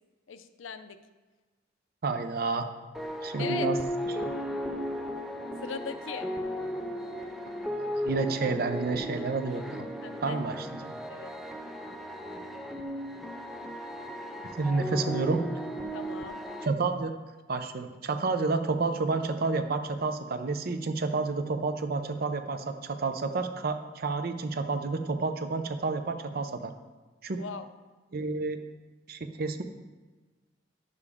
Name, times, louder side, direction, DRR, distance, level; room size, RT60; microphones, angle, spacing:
voice 1, 0.3-1.0 3.4-3.7 5.6-6.3 10.0-10.4 11.1-11.3 15.9-16.4 27.4-27.7, left 6 dB, 85° left, 10 dB, 0.5 m, -39 dB
voice 2, 2.0-2.7 3.2-3.8 4.2-4.4 8.0-9.9 10.2-10.9 14.5-15.5 16.6-17.1 17.5-26.7 27.2-27.4 28.1-28.6 29.1-29.6, right 3 dB, 50° right, 8 dB, 0.5 m, -30 dB
sound 1, 2.9-16.7, equal, ahead, 0.4 m, -35 dB
9.5 x 6.9 x 3.5 m, 1.3 s
head